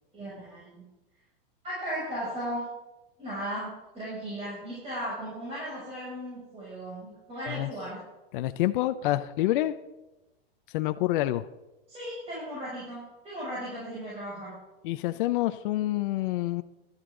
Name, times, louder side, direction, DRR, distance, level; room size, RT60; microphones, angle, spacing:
voice 1, 0.1-0.8 1.6-2.6 3.2-8.0 11.9-14.5, equal, 20° right, -8 dB, 6.7 m, -36 dB
voice 2, 8.3-9.7 10.7-11.5 14.8-16.6, left 15 dB, 60° left, 10 dB, 0.7 m, -27 dB
19.0 x 12.5 x 3.8 m, 1.0 s
supercardioid pair, 150°, 29 cm